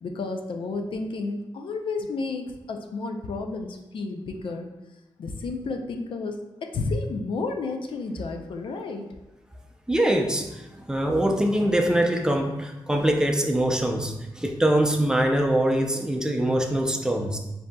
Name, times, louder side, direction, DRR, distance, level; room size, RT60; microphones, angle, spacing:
voice 1, 0.0-4.7 5.2-9.1, left 3 dB, 75° left, 5 dB, 0.5 m, -31 dB
voice 2, 9.9-17.4, right 1 dB, 10° right, 2 dB, 0.5 m, -23 dB
7.4 x 2.7 x 2.3 m, 1.0 s
wide cardioid pair, 120°, 9 cm